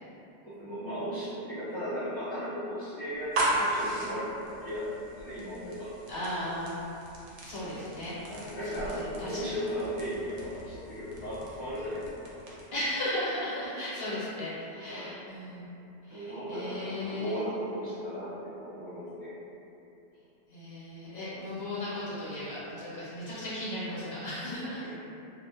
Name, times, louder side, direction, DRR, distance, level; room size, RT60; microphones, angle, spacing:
voice 1, 0.4-4.9 5.1-5.9 7.7-7.8 8.3-12.3 14.9-15.1 16.1-19.3 21.3-21.4 24.8-24.9, equal, 10° right, -13 dB, 0.7 m, -36 dB
sound 1, 3.1-12.8, right 1 dB, 80° right, 0.9 m, -37 dB
voice 2, 6.1-6.9 7.4-8.2 9.2-9.4 12.7-15.7 16.1-17.4 20.5-24.8, left 1 dB, 60° left, -10 dB, 1.0 m, -36 dB
2.4 x 2.1 x 2.9 m, 2.8 s
omnidirectional pair, 1.2 m